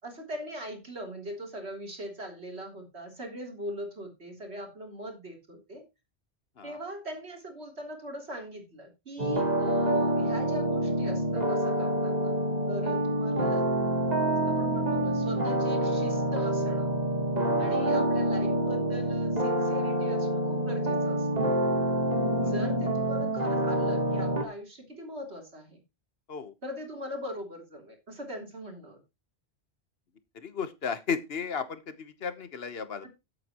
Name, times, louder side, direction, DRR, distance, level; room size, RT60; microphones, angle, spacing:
voice 1, 0.0-5.9 6.6-12.3 12.7-13.7 14.5-16.9 17.6-21.6 22.4-25.8 26.6-29.0 33.0-33.1, equal, 85° right, 2 dB, 3.7 m, -41 dB
sound 1, 9.2-24.4, right 1 dB, 40° right, 1.8 m, -27 dB
voice 2, 22.2-22.5 26.3-26.5 30.3-33.1, left 6 dB, 65° left, 12 dB, 1.4 m, -35 dB
13.5 x 8.5 x 3.0 m, 0.24 s
omnidirectional pair, 1.1 m